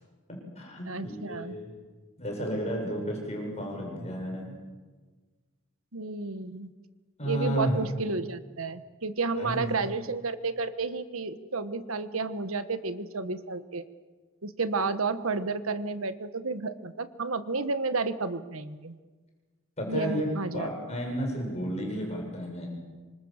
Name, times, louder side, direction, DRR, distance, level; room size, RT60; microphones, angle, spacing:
voice 1, 0.3-1.7 2.2-4.6 7.2-7.8 9.4-9.7 19.8-20.3 20.5-22.7, equal, 30° left, 0 dB, 7.1 m, -32 dB
voice 2, 0.8-1.6 5.9-6.7 7.2-13.8 14.4-18.9 19.9-20.7, right 3 dB, 80° right, 11 dB, 1.4 m, -31 dB
26.5 x 25.5 x 7.4 m, 1.4 s
head